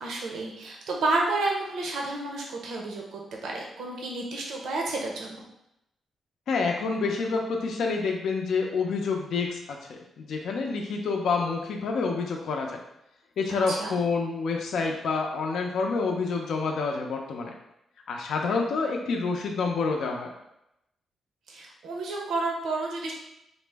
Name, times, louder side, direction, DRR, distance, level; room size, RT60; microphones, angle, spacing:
voice 1, 0.0-5.4 13.7-13.9 21.5-23.1, right 2 dB, 85° right, -1 dB, 0.6 m, -30 dB
voice 2, 6.5-12.8 13.4-17.5 18.1-20.3, left 4 dB, 75° left, 1 dB, 0.4 m, -28 dB
4.1 x 2.0 x 3.3 m, 0.83 s
cardioid pair, 125°, 0 cm